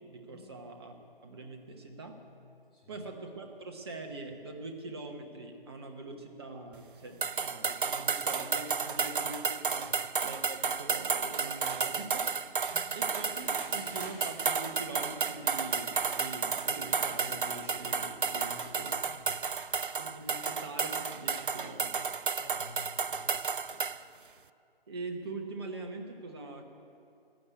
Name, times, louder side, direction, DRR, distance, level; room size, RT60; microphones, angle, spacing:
voice 1, 0.1-1.0 1.2-2.1 2.9-9.9 10.2-12.3 12.9-19.0 20.0-22.1 24.9-26.7, right 2 dB, 25° right, 4 dB, 1.2 m, -43 dB
voice 2, 2.7-3.1 9.8-10.0 12.5-12.9 19.0-19.8 22.3-23.4, left 2 dB, ahead, -8 dB, 1.8 m, -52 dB
sound 1, 7.2-24.0, right 5 dB, 60° right, 0.5 m, -32 dB
sound 2, 13.0-18.9, left 2 dB, 70° left, 2.3 m, -51 dB
15.0 x 11.0 x 8.2 m, 2.5 s
figure-of-eight pair, 155°, 30 cm